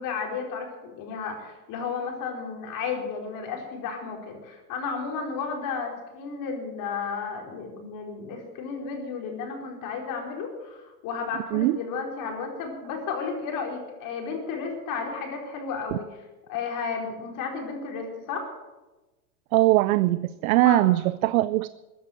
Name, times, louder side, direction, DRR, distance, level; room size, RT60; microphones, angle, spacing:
voice 1, 0.0-16.2 16.5-18.5 20.6-20.8, left 5 dB, 40° left, 2 dB, 4.7 m, -33 dB
voice 2, 19.5-21.7, right 17 dB, 60° right, 16 dB, 0.6 m, -21 dB
14.5 x 10.0 x 9.3 m, 1.1 s
hypercardioid pair, 120°, 48 cm